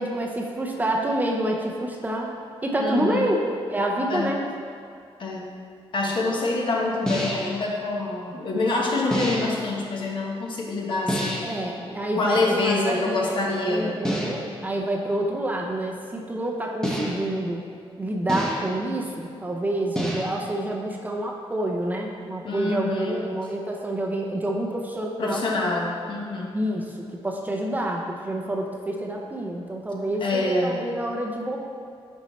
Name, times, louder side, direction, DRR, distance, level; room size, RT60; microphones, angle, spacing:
voice 1, 0.0-2.3 2.6-4.4 11.4-13.4 13.7-17.6 18.0-25.4 26.5-26.9 27.2-31.6, right 1 dB, 15° right, 0 dB, 0.6 m, -28 dB
voice 2, 2.8-3.2 4.1-4.3 5.2-5.4 5.9-11.4 12.2-14.0 22.4-23.2 25.2-26.5 30.2-30.8, left 2 dB, 50° left, -2 dB, 1.1 m, -26 dB
sound 1, 7.1-7.6 9.1-9.7 11.1-11.6 14.0-14.6 16.8-17.4 18.3-18.9 20.0-20.5, equal, 5° left, 0.9 m, -28 dB
9.6 x 5.5 x 3.1 m, 2.3 s
wide cardioid pair, 150°, 10 cm